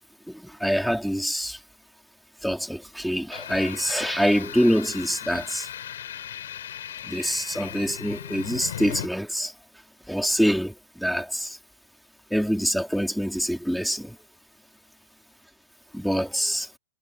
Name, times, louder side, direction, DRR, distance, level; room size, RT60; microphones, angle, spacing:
voice 1, 0.3-1.6 2.4-5.7 7.1-9.5 10.1-11.6 12.3-14.2 15.9-16.7, equal, ahead, 2.3 m, -25 dB
sound 1, 3.3-9.1, left 10 dB, 75° left, 7.7 m, -37 dB
supercardioid pair, 175°, 0 cm